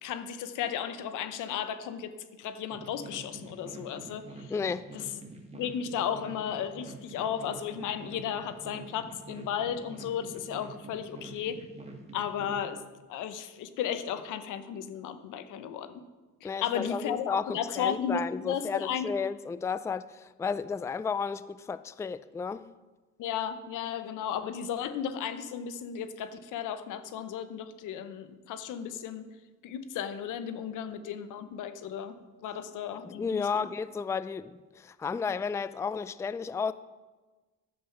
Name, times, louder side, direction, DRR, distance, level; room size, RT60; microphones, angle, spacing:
voice 1, 0.0-2.1 2.4-4.5 4.9-5.0 5.5-11.6 12.1-12.8 13.1-16.0 16.4-19.1 23.2-29.3 29.6-33.7, left 8 dB, 90° left, 0.9 m, -34 dB
sound 1, 2.7-12.6, right 2 dB, 20° right, 2.1 m, -46 dB
voice 2, 4.5-4.9 16.4-22.7 32.9-36.7, left 5 dB, 10° left, 0.3 m, -33 dB
10.5 x 7.6 x 5.7 m
cardioid pair, 90°, 30 cm